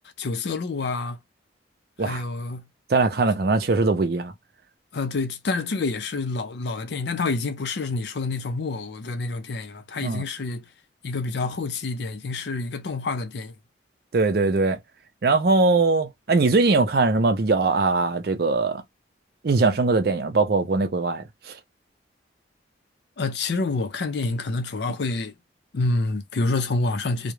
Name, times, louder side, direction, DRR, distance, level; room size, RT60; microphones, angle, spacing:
voice 1, 0.2-1.2 2.0-2.7 4.9-10.7 11.0-13.5 23.2-25.3 25.7-27.3, left 3 dB, 65° left, 0.5 m, -27 dB
voice 2, 2.9-4.3 10.0-10.2 14.1-14.8 15.2-18.8 19.4-21.5, right 3 dB, 55° right, 0.5 m, -21 dB
2.4 x 2.0 x 2.9 m
head